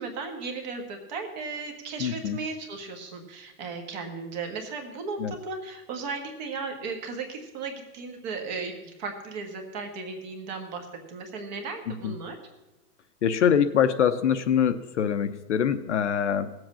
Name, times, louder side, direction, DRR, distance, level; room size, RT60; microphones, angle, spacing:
voice 1, 0.0-12.4, right 4 dB, 25° right, 4 dB, 1.4 m, -36 dB
voice 2, 2.0-2.4 5.2-5.3 12.0-12.1 13.2-16.5, left 8 dB, 50° left, 10 dB, 0.7 m, -24 dB
17.5 x 7.8 x 7.3 m, 1.0 s
hypercardioid pair, 175°, 47 cm